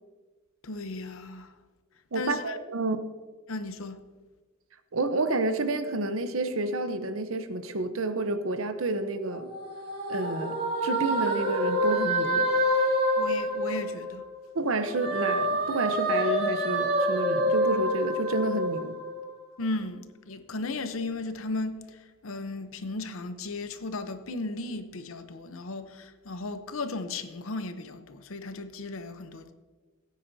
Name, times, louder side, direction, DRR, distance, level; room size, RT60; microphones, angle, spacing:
voice 1, 0.6-1.5 2.1-2.6 3.5-4.0 13.2-14.2 19.6-29.5, left 3 dB, 75° left, 0.8 m, -35 dB
voice 2, 2.1-3.0 4.9-9.5 10.1-10.6 10.8-12.5 14.5-19.0, right 2 dB, 70° right, 0.8 m, -29 dB
sound 1, 9.3-14.3 14.7-19.4, equal, 50° right, 2.9 m, -27 dB
17.0 x 9.2 x 2.7 m
head